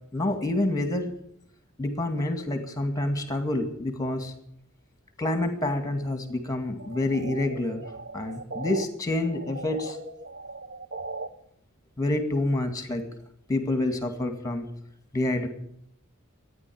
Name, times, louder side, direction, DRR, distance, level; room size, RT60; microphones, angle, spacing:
voice 1, 0.1-1.1 1.8-4.3 5.2-7.8 8.1-10.0 12.0-13.0 13.5-14.7 15.1-15.5, left 2 dB, 15° left, 7 dB, 2.1 m, -27 dB
sound 1, 6.8-8.9 9.2-11.3, right 3 dB, 55° right, 1.0 m, -38 dB
14.0 x 9.9 x 9.4 m, 0.71 s
head